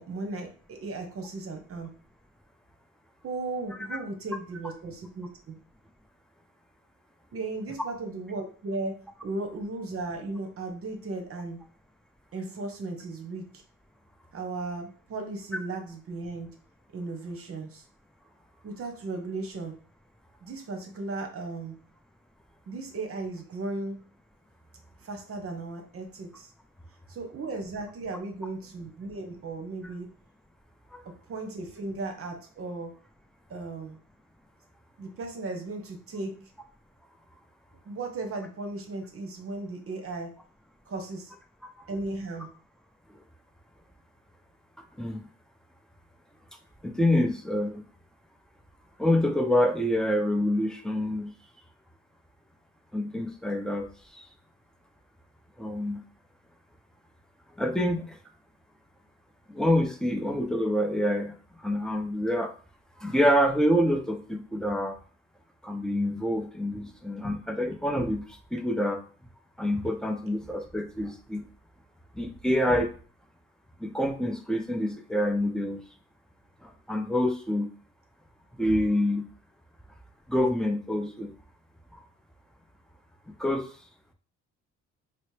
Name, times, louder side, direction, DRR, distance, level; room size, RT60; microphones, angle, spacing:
voice 1, 0.0-1.9 3.2-5.5 7.3-11.6 12.3-13.5 14.3-16.5 16.9-17.8 18.6-19.7 20.4-21.8 22.7-24.1 25.0-26.5 27.1-30.1 31.0-32.9 33.5-34.0 35.0-36.5 37.8-40.3 40.9-41.3 41.9-42.5, right 3 dB, 50° right, 4 dB, 0.9 m, -36 dB
voice 2, 46.8-47.8 49.0-51.3 52.9-53.9 54.1-54.3 55.6-56.0 57.6-58.2 59.5-61.3 61.6-62.5 63.0-65.0 65.6-68.2 68.5-69.0 69.6-71.4 72.2-72.9 73.8-75.8 76.6-77.7 78.6-79.3 80.3-81.3 81.9-82.0 83.4-83.7, left 1 dB, ahead, 3 dB, 0.5 m, -27 dB
4.2 x 2.0 x 3.2 m, 0.41 s
cardioid pair, 90°, 30 cm